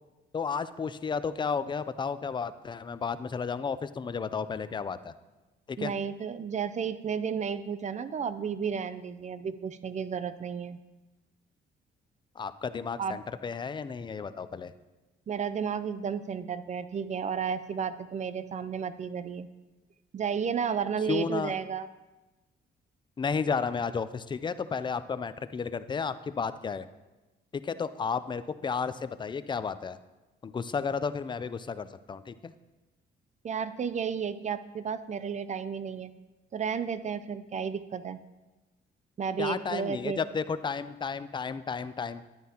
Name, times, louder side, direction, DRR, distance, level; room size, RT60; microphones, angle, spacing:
voice 1, 0.3-5.1 5.7-5.9 12.4-14.7 21.1-21.6 23.2-26.9 27.5-30.0 30.4-32.5 39.4-42.2, left 5 dB, 25° left, 13 dB, 0.4 m, -32 dB
voice 2, 5.8-10.8 13.0-13.2 15.3-19.5 20.1-21.9 33.4-36.1 36.5-38.2 39.2-40.2, right 7 dB, 35° right, 13 dB, 0.5 m, -32 dB
10.5 x 9.3 x 2.9 m, 1.1 s
cardioid pair, 90°, 20 cm